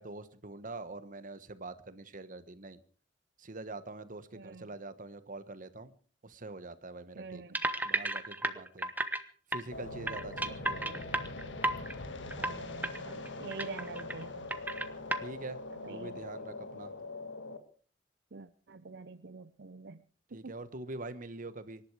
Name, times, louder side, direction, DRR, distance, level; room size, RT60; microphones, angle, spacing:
voice 1, 0.0-2.8 3.4-5.9 6.2-7.4 7.8-8.9 9.5-11.1 15.2-15.6 15.9-16.9 20.3-21.8, right 2 dB, 45° right, 12 dB, 1.3 m, -44 dB
voice 2, 4.3-4.7 7.2-7.6 12.3-14.5 15.7-16.2 18.3-20.0 20.3-20.6, right 4 dB, 65° right, 11 dB, 0.7 m, -46 dB
sound 1, 7.5-9.2 9.5-9.6 10.1-11.9 12.3-12.5 12.8-13.0 13.3-14.2 14.5-15.2, right 1 dB, 10° right, 1.2 m, -33 dB
sound 2, 9.7-17.6, left 2 dB, 80° left, 1.8 m, -43 dB
25.0 x 11.5 x 4.9 m, 0.43 s
head